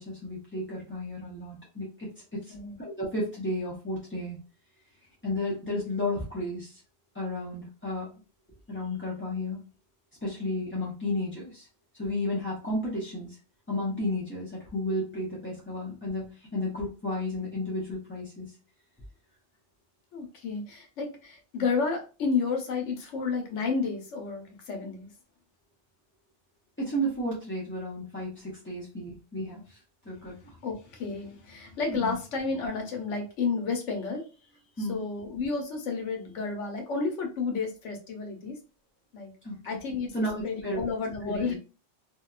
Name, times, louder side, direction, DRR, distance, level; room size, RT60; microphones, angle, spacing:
voice 1, 0.0-2.5 2.8-4.4 5.2-6.8 7.1-8.1 8.7-9.6 10.2-11.7 11.9-13.4 13.7-18.5 26.8-29.8 30.0-30.6 31.9-32.2 34.8-35.0 39.4-39.8 40.1-40.8 41.2-41.5, left 1 dB, 15° left, -7 dB, 0.4 m, -33 dB
voice 2, 20.1-25.1 30.6-34.2 34.8-38.6 39.1-39.3 39.6-40.1 40.4-41.6, left 4 dB, 75° left, 4 dB, 1.1 m, -31 dB
2.7 x 2.1 x 2.3 m, 0.33 s
omnidirectional pair, 1.2 m